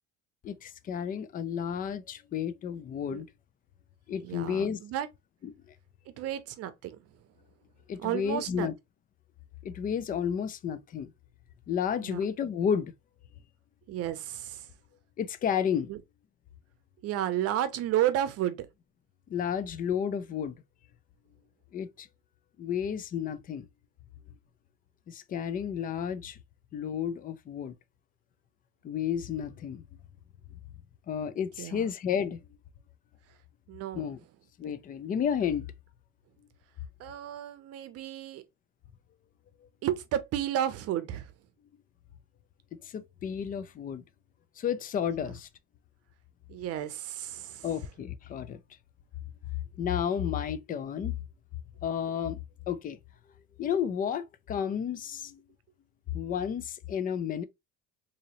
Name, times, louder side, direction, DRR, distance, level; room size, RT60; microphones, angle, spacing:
voice 1, 0.4-3.3 4.1-4.8 5.4-5.7 7.9-8.7 9.6-11.1 11.7-12.9 15.2-15.9 19.3-20.6 21.7-22.1 22.6-23.7 25.1-26.4 26.7-27.7 28.8-29.8 31.1-32.4 33.9-34.2 34.6-35.7 42.8-44.0 44.6-45.5 47.6-48.6 49.8-51.2 51.8-52.4 52.7-53.0 53.6-55.4 56.1-57.4, left 8 dB, 30° left, 0.4 m, -32 dB
voice 2, 4.2-5.1 6.1-7.0 8.0-8.7 12.0-12.2 13.9-14.7 15.9-16.0 17.0-18.7 31.6-31.9 33.7-34.0 37.0-38.4 39.8-41.3 45.2-45.3 46.5-47.6, right 11 dB, 55° right, 0.7 m, -32 dB
3.8 x 2.8 x 2.9 m
cardioid pair, 135°, 29 cm